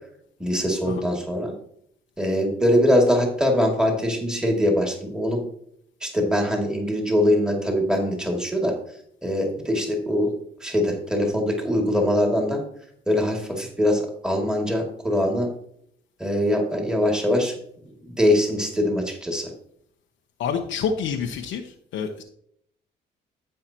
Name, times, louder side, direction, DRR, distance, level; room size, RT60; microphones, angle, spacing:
voice 1, 0.4-1.5 2.2-5.4 6.0-8.7 9.2-10.3 10.6-12.6 13.1-15.5 16.2-17.5 18.0-19.5, left 1 dB, 5° right, 0 dB, 2.4 m, -22 dB
voice 2, 20.4-21.6 21.9-22.2, left 6 dB, 85° left, 1 dB, 0.9 m, -27 dB
14.5 x 5.6 x 2.9 m, 0.68 s
cardioid pair, 90°, 20 cm